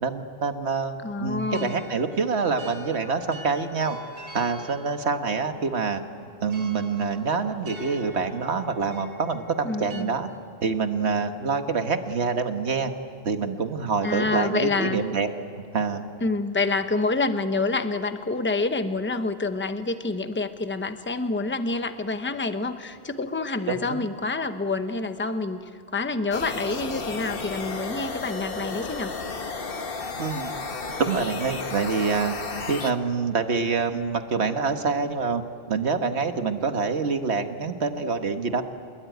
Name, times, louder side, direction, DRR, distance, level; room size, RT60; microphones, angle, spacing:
voice 1, 0.0-4.0 4.3-6.0 6.4-10.3 10.6-12.9 13.2-15.3 15.7-16.1 23.7-24.1 30.2-30.5 31.0-32.4 32.7-35.4 35.7-38.6, right 4 dB, 80° right, 7 dB, 1.7 m, -26 dB
voice 2, 1.0-1.8 9.6-10.1 14.0-15.0 16.2-25.6 25.9-29.1, left 3 dB, 10° left, 9 dB, 0.9 m, -27 dB
sound 1, 1.4-10.0, right 2 dB, 60° right, 1.9 m, -45 dB
sound 2, 26.3-32.9, left 4 dB, 60° left, 1.5 m, -33 dB
26.0 x 21.5 x 9.3 m, 2.3 s
omnidirectional pair, 1.1 m